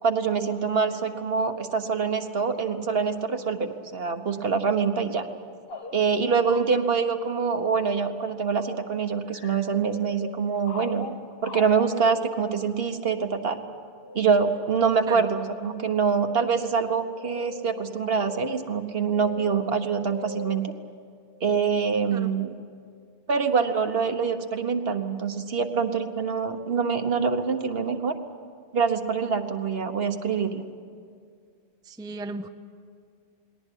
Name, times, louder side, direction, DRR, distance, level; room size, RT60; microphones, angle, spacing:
voice 1, 0.0-5.3 5.9-11.2 11.4-13.6 14.1-20.7 21.4-22.5 23.3-28.1 28.7-30.6, right 5 dB, 60° right, 7 dB, 1.4 m, -25 dB
sound 1, 5.7-6.7 7.5-8.1 8.5-8.9 9.3-12.3 14.0-14.3 15.1-15.7 16.1-16.7 17.1-20.6, left 4 dB, 60° left, 1.3 m, -40 dB
voice 2, 31.9-32.5, right 2 dB, 5° right, 8 dB, 0.5 m, -36 dB
20.5 x 18.0 x 9.9 m, 2.2 s
omnidirectional pair, 1.1 m